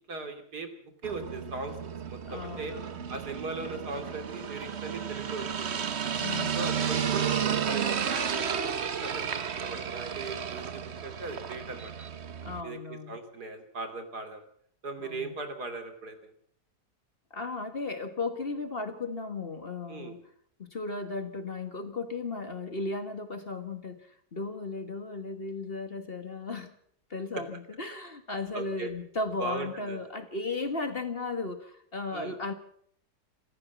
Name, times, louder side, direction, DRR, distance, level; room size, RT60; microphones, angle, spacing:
voice 1, 0.1-0.7 1.0-1.7 2.0-2.7 3.1-5.9 6.5-12.1 12.6-14.4 14.8-16.3 19.9-20.1 28.5-28.9 29.4-30.0 32.1-32.4, right 3 dB, 75° right, 7 dB, 3.4 m, -39 dB
sound 1, 1.0-12.6, right 7 dB, 45° right, 1.2 m, -32 dB
voice 2, 2.2-3.0 6.2-6.7 12.4-13.2 15.0-15.4 17.3-20.2 20.6-26.7 27.1-32.5, left 3 dB, 35° left, 8 dB, 1.8 m, -35 dB
26.5 x 13.5 x 7.2 m, 0.65 s
omnidirectional pair, 1.7 m